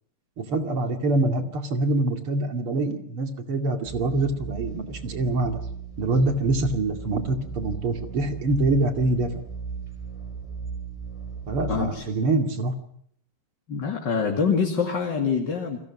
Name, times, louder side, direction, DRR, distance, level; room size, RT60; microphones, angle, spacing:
voice 1, 0.4-5.6 6.0-9.3 11.5-12.7, right 2 dB, 75° right, 6 dB, 3.3 m, -25 dB
sound 1, 3.9-11.9, right 5 dB, 15° left, 4.6 m, -36 dB
voice 2, 11.7-12.0 13.7-15.8, left 5 dB, 55° left, 2 dB, 2.9 m, -25 dB
30.0 x 22.0 x 6.2 m, 0.67 s
omnidirectional pair, 2.4 m